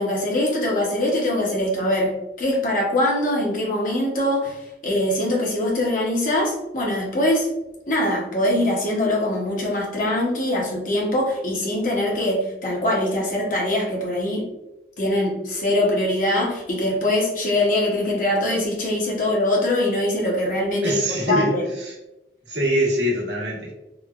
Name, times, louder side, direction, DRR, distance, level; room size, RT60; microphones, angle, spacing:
voice 1, 0.0-7.5 7.9-14.5 15.0-21.7, left 1 dB, 50° left, -3 dB, 0.7 m, -23 dB
voice 2, 20.8-21.9 22.5-23.7, equal, 80° right, -4 dB, 1.0 m, -23 dB
3.1 x 2.2 x 2.3 m, 0.95 s
head